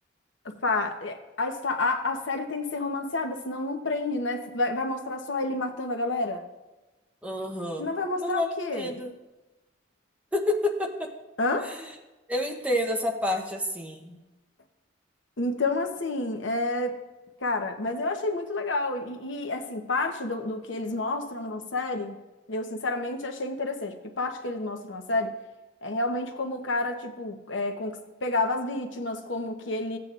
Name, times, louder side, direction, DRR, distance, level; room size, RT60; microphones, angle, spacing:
voice 1, 0.4-6.4 7.8-8.9 11.4-11.7 15.4-16.9 17.4-22.1 22.5-25.3 25.8-30.0, left 2 dB, 65° left, 5 dB, 1.0 m, -29 dB
voice 2, 7.2-7.9 8.2-8.5 8.7-9.1 10.3-11.1 11.6-11.9 12.3-14.2, left 1 dB, 5° right, 2 dB, 0.9 m, -29 dB
16.0 x 8.4 x 2.5 m, 1.1 s
head